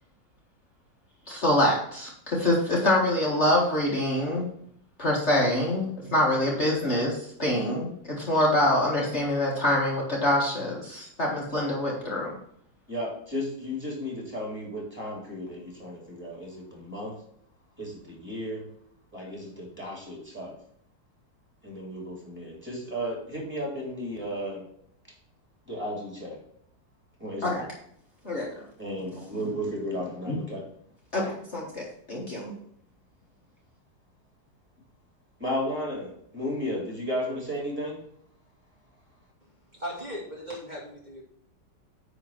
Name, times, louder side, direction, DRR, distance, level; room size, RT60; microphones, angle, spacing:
voice 1, 1.3-4.5 5.0-12.3 27.4-27.6 28.2-28.5 30.3-30.4 31.1-32.5, left 1 dB, 40° left, -3 dB, 1.9 m, -25 dB
voice 2, 12.9-17.2 17.8-18.7 19.1-20.5 21.6-24.7 25.7-26.4 27.2-27.7 28.8-30.6 35.4-38.0, equal, 5° right, -3 dB, 3.3 m, -34 dB
voice 3, 39.7-41.2, equal, 25° right, -4 dB, 2.6 m, -37 dB
9.9 x 4.0 x 6.0 m, 0.67 s
omnidirectional pair, 1.9 m